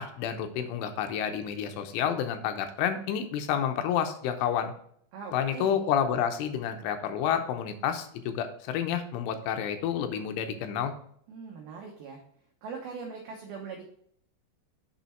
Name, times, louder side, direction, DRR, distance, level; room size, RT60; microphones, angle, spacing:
voice 1, 0.0-4.7 5.3-10.9, left 8 dB, 80° left, 7 dB, 3.2 m, -29 dB
voice 2, 5.1-5.8 11.3-12.2 12.6-13.9, right 5 dB, 90° right, 1 dB, 2.1 m, -41 dB
7.1 x 5.5 x 4.3 m, 0.64 s
omnidirectional pair, 5.7 m